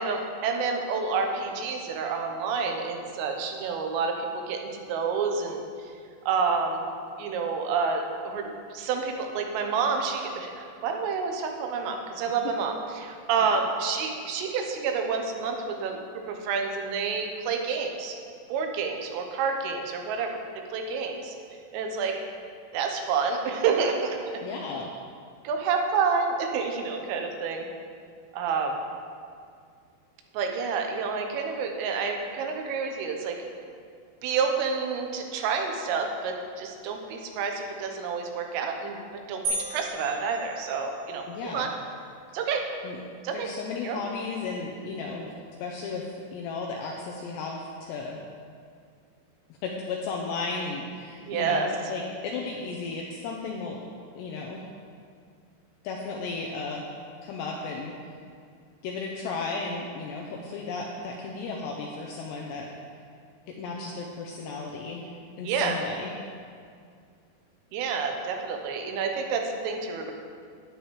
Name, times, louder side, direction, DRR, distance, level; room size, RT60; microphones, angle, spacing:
voice 1, 0.0-5.6 6.3-6.9 7.2-18.2 18.5-20.4 20.7-21.4 21.7-22.2 22.7-24.4 25.5-27.7 28.3-28.8 30.3-33.4 34.2-39.0 39.3-39.4 39.7-41.2 41.5-41.7 42.3-42.7 43.2-43.5 43.8-44.0 51.3-51.7 65.4-65.8 67.7-70.1, right 5 dB, 90° right, 3 dB, 3.5 m, -29 dB
voice 2, 24.4-24.9 41.3-41.7 42.8-43.0 43.3-45.3 45.6-48.2 49.6-53.8 54.2-54.6 55.8-56.8 57.2-57.9 58.8-62.7 63.5-65.0 65.4-66.1, left 4 dB, 80° left, -1 dB, 2.5 m, -34 dB
sound 1, 39.5-41.2, right 2 dB, 65° right, 3.5 m, -34 dB
12.0 x 9.8 x 3.2 m, 2.2 s
omnidirectional pair, 5.7 m